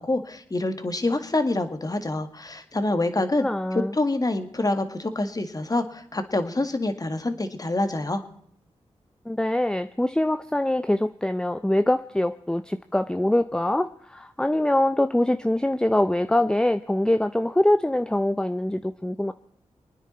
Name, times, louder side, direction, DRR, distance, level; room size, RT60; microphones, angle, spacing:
voice 1, 0.0-8.2, left 2 dB, 30° left, 8 dB, 1.8 m, -26 dB
voice 2, 3.4-3.9 9.3-19.3, left 1 dB, 5° left, 10 dB, 0.6 m, -24 dB
24.5 x 9.6 x 4.3 m, 0.68 s
cardioid pair, 50°, 12 cm